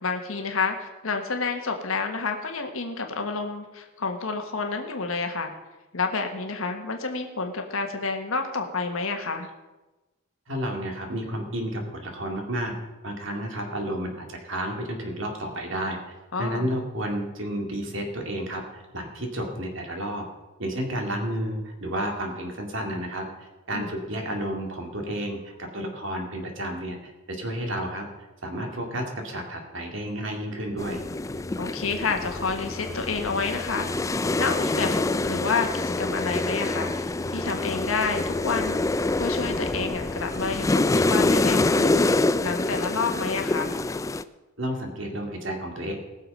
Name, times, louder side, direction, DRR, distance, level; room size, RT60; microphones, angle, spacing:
voice 1, 0.0-5.5 5.9-9.5 16.3-16.7 23.7-23.9 31.6-43.8, left 4 dB, 80° left, 4 dB, 1.4 m, -29 dB
voice 2, 10.5-12.7 13.0-16.0 16.4-20.2 20.6-28.0 28.4-31.0 44.6-45.9, right 1 dB, 65° right, 2 dB, 2.5 m, -31 dB
sound 1, 30.8-44.2, left 2 dB, 15° left, 0.3 m, -26 dB
19.5 x 6.8 x 5.5 m, 1.1 s
head